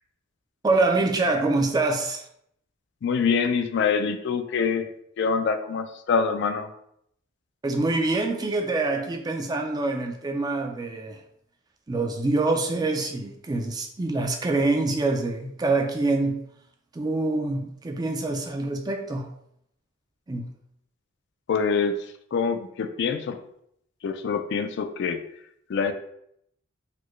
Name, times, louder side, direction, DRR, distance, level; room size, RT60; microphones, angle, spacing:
voice 1, 0.6-2.2 7.6-11.2 11.9-16.4 16.9-19.3 20.3-20.5, right 2 dB, 20° right, 3 dB, 0.4 m, -25 dB
voice 2, 3.0-4.9 5.2-6.7 21.5-22.0 22.3-23.4 24.0-25.2 25.7-25.9, left 5 dB, 60° left, 8 dB, 0.3 m, -25 dB
4.1 x 2.1 x 3.1 m, 0.72 s
head